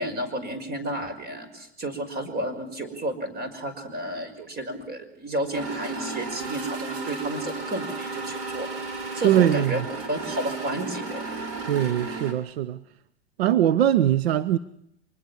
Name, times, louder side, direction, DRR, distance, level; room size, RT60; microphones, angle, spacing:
voice 1, 0.0-8.7 9.1-9.8 10.1-11.2, right 1 dB, 30° right, 5.8 m, -31 dB
sound 1, 5.5-12.3, right 3 dB, 45° right, 5.5 m, -34 dB
voice 2, 9.2-9.8 11.6-12.8 13.4-14.6, right 11 dB, 70° right, 1.0 m, -21 dB
25.0 x 21.0 x 7.3 m
hypercardioid pair, 100°, 32 cm